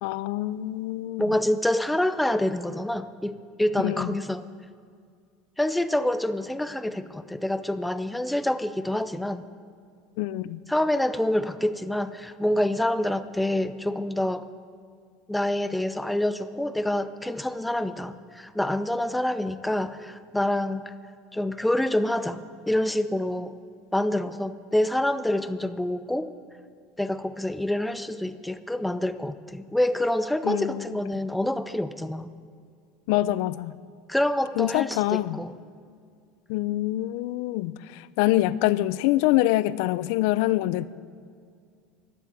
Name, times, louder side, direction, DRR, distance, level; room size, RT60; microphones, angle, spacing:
voice 1, 0.0-1.2 3.8-4.1 10.2-10.6 30.4-30.9 33.1-33.7 34.6-35.4 36.5-40.8, left 16 dB, 60° left, 17 dB, 0.4 m, -25 dB
voice 2, 1.2-4.4 5.6-9.4 10.7-14.4 15.3-20.9 21.3-23.5 23.9-26.3 27.0-32.3 34.1-35.5, left 1 dB, 5° left, 12 dB, 0.4 m, -27 dB
13.0 x 12.0 x 7.5 m, 2.2 s
cardioid pair, 170°, 0 cm